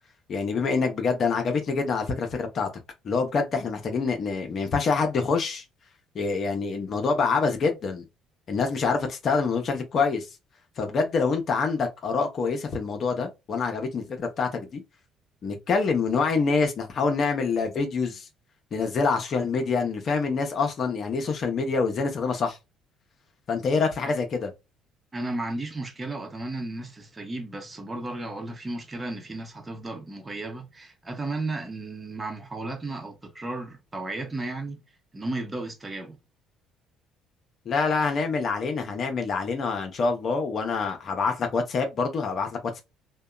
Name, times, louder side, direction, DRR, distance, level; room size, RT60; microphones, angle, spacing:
voice 1, 0.3-2.7 3.0-5.6 6.1-8.0 8.5-10.3 10.8-14.8 15.4-18.3 18.7-22.6 23.5-24.5 37.7-42.8, left 4 dB, 50° left, 0.7 m, -26 dB
voice 2, 25.1-34.8 35.1-36.2, right 2 dB, 25° right, 0.9 m, -34 dB
2.7 x 2.2 x 2.2 m
hypercardioid pair, 65°, 0 cm